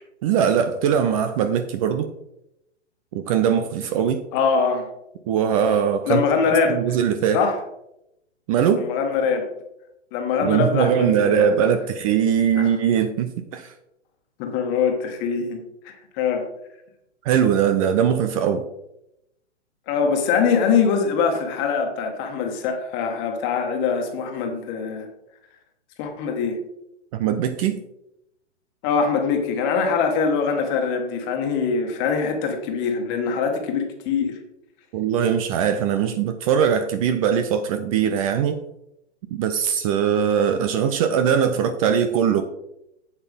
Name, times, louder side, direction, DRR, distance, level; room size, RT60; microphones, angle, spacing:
voice 1, 0.2-2.1 3.1-4.2 5.3-6.2 6.7-7.4 8.5-8.9 10.4-13.7 17.2-18.6 27.1-27.8 34.9-38.6 39.3-42.4, right 8 dB, 30° right, 0.6 m, -21 dB
voice 2, 4.3-4.9 6.1-6.8 7.3-7.6 8.8-9.5 10.1-11.6 12.5-12.7 14.4-15.6 15.8-16.5 19.9-25.1 26.0-26.6 28.8-34.4, left 5 dB, 30° left, 1.6 m, -23 dB
8.1 x 7.9 x 3.5 m
hypercardioid pair, 120°, 36 cm